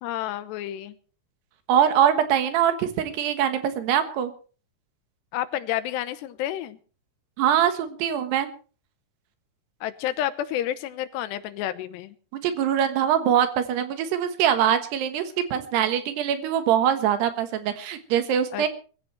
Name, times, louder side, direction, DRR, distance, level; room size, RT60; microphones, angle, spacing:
voice 1, 0.0-1.0 5.3-6.8 9.8-12.2 18.5-18.7, left 12 dB, 85° left, 13 dB, 3.1 m, -30 dB
voice 2, 1.7-4.3 7.4-8.5 12.3-18.7, right 9 dB, 75° right, 9 dB, 3.4 m, -23 dB
23.0 x 15.5 x 3.3 m, 0.39 s
omnidirectional pair, 4.9 m